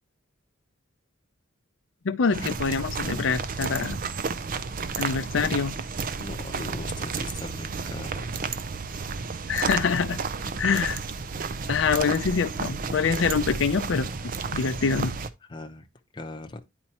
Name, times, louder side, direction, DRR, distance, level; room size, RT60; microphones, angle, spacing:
voice 1, 2.0-4.0 5.0-5.7 9.5-10.2 10.6-11.0 11.7-14.1 14.5-15.1, left 5 dB, 75° left, 0.5 m, -25 dB
sound 1, 2.3-15.3, right 5 dB, 45° right, 0.5 m, -32 dB
voice 2, 6.2-8.2 15.4-15.9 16.1-16.7, left 2 dB, 25° left, 0.7 m, -39 dB
9.9 x 4.4 x 2.9 m
head